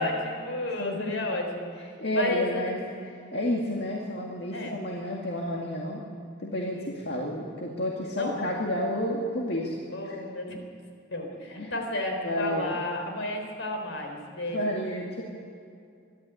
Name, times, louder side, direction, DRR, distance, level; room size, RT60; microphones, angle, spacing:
voice 1, 0.0-1.7 2.1-2.7 4.5-4.8 6.6-7.0 8.2-8.6 9.9-10.6 11.1-14.7, left 1 dB, 75° left, 3 dB, 4.1 m, -32 dB
voice 2, 0.8-1.1 2.0-2.8 3.3-6.0 6.4-9.8 10.0-10.2 11.6-11.7 12.2-12.8 14.5-15.2, left 1 dB, 55° left, -2 dB, 2.1 m, -30 dB
24.5 x 12.5 x 9.4 m, 2.5 s
head